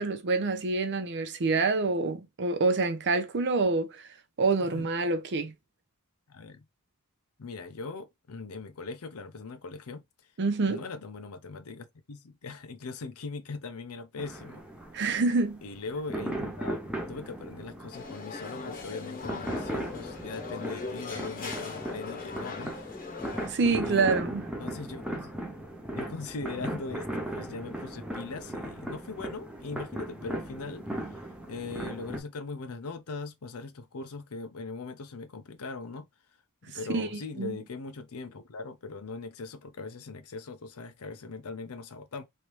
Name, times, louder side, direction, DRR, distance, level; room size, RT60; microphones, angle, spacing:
voice 1, 0.0-4.0 4.4-5.5 10.4-10.8 14.9-15.6 23.5-24.4 36.9-37.6, right 3 dB, 55° right, 0.6 m, -27 dB
voice 2, 6.3-6.6 7.4-10.0 10.7-14.6 15.6-16.8 17.1-22.8 23.8-24.1 24.6-25.3 25.9-31.2 31.5-36.1 36.6-42.2, left 3 dB, 75° left, 0.6 m, -40 dB
sound 1, 14.2-32.2, right 1 dB, 5° right, 0.6 m, -37 dB
sound 2, 17.9-23.5, left 4 dB, 40° left, 1.0 m, -39 dB
3.2 x 2.8 x 3.1 m
head